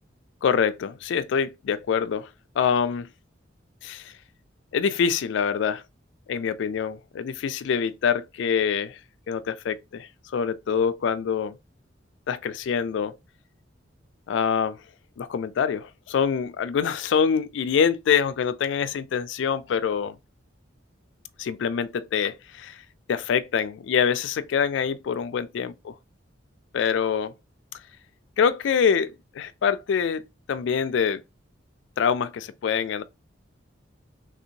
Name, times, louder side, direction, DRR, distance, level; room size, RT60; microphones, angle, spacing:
voice 1, 0.4-2.3 2.6-3.1 3.8-4.1 4.7-5.8 6.3-9.0 9.3-11.6 12.3-13.2 14.3-14.8 15.2-20.1 21.4-22.8 23.1-25.9 26.7-27.3 28.4-30.2 30.5-31.2 32.0-33.0, left 7 dB, 70° left, 0.3 m, -25 dB
3.4 x 2.8 x 2.5 m
head